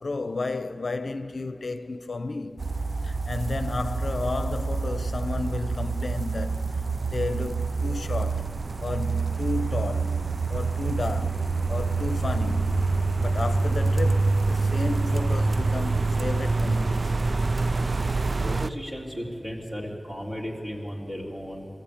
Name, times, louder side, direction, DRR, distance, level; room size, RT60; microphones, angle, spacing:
voice 1, 0.0-2.7 3.0-8.5 8.8-10.2 10.5-12.9 13.2-17.2, left 3 dB, 70° left, 0.7 m, -32 dB
sound 1, 2.6-18.7, right 3 dB, 60° right, 0.4 m, -26 dB
voice 2, 18.4-21.7, equal, 25° right, 3.7 m, -35 dB
23.0 x 15.0 x 8.7 m
wide cardioid pair, 65°, 0 cm